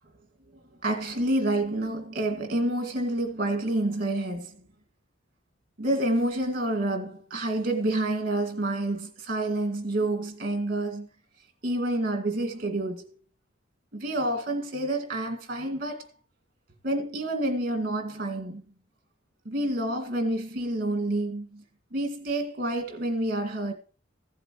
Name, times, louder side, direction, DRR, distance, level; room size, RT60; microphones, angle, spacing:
voice 1, 0.8-4.6 5.8-11.1 11.6-13.2 13.9-16.1 16.8-18.6 19.5-21.6 21.9-23.7, right 1 dB, 50° right, 2.0 m, -28 dB
15.5 x 7.9 x 3.1 m
head